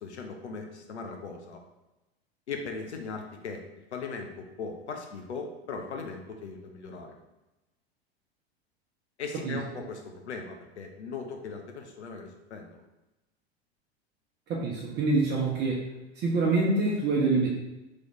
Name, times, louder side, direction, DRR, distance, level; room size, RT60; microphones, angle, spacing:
voice 1, 0.0-1.6 2.5-3.6 3.9-7.2 9.2-12.8, left 4 dB, 85° left, 3 dB, 0.7 m, -39 dB
voice 2, 14.5-15.9 16.2-17.5, right 3 dB, 30° right, -3 dB, 0.9 m, -25 dB
3.1 x 3.1 x 4.0 m, 1.0 s
hypercardioid pair, 90°, 33 cm